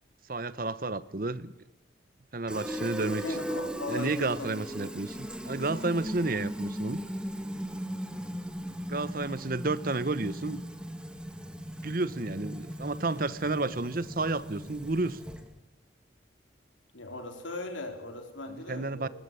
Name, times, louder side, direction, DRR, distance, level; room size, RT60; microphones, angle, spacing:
voice 1, 0.3-1.5 2.3-3.2 3.9-7.0 8.9-10.6 11.8-15.2 18.5-19.1, right 2 dB, 45° right, 17 dB, 0.9 m, -31 dB
Fill (with liquid), 2.5-15.6, equal, 5° right, 1.6 m, -38 dB
voice 2, 3.2-4.6 16.9-19.1, left 2 dB, 85° left, 5 dB, 4.3 m, -38 dB
20.0 x 18.0 x 9.7 m, 0.98 s
head